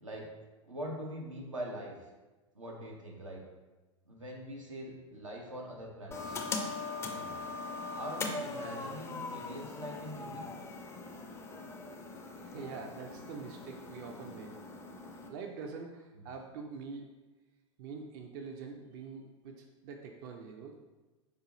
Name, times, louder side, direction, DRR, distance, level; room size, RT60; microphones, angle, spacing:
voice 1, 0.0-0.3 0.6-2.1 2.5-3.4 4.1-6.4 7.1-7.4 7.9-10.5 16.1-16.3, right 1 dB, 90° right, -1 dB, 0.7 m, -43 dB
sound 1, 6.1-15.3, left 3 dB, 15° left, 0.3 m, -41 dB
voice 2, 12.4-14.5 15.3-17.1 17.8-20.8, right 5 dB, 45° right, 3 dB, 0.4 m, -45 dB
4.8 x 2.4 x 3.0 m, 1.2 s
figure-of-eight pair, 90°, 16 cm